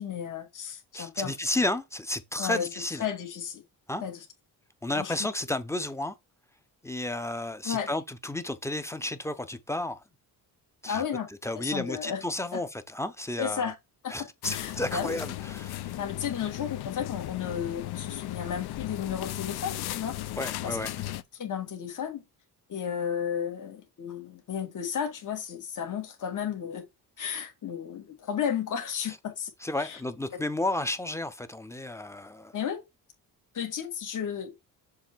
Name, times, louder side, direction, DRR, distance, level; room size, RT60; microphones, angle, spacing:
voice 1, 0.0-1.3 2.4-2.7 3.0-3.6 4.0-4.2 4.9-5.3 7.6-7.9 10.9-11.3 11.6-12.2 12.5-12.6 13.4-13.8 14.0-14.1 14.5-15.2 16.0-20.2 20.6-21.1 21.4-22.2 22.7-26.8 27.2-29.5 29.8-30.0 30.3-30.4 32.5-32.8 33.5-34.6, left 8 dB, 50° left, 2.0 m, -33 dB
voice 2, 0.9-3.1 3.9-4.0 4.8-6.1 6.8-10.0 10.8-11.0 11.4-13.7 14.1-16.0 20.4-20.9 29.6-32.5, left 1 dB, 5° left, 0.7 m, -32 dB
sound 1, 14.4-21.2, left 14 dB, 70° left, 0.7 m, -36 dB
7.0 x 3.3 x 4.5 m
cardioid pair, 130°, 39 cm